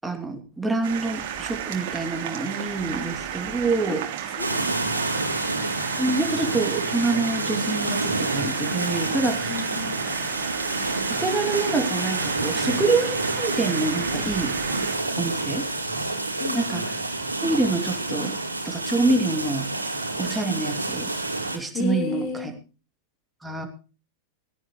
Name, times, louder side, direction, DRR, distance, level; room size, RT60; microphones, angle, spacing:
voice 1, 0.0-4.0 6.0-9.8 11.1-14.5 15.2-15.7 16.5-16.8 17.4-18.4 18.6-19.7 20.2-21.1 21.5-22.5 23.4-23.7, right 3 dB, 5° right, 4 dB, 2.9 m, -26 dB
sound 1, 0.8-15.0, right 9 dB, 50° right, 3.2 m, -33 dB
voice 2, 4.3-6.1 9.5-10.0 16.4-16.9 21.7-22.5, left 3 dB, 40° left, 8 dB, 4.4 m, -33 dB
sound 2, 4.4-21.6, right 2 dB, 80° right, 2.7 m, -28 dB
17.5 x 17.0 x 3.1 m, 0.34 s
figure-of-eight pair, 90°, 0 cm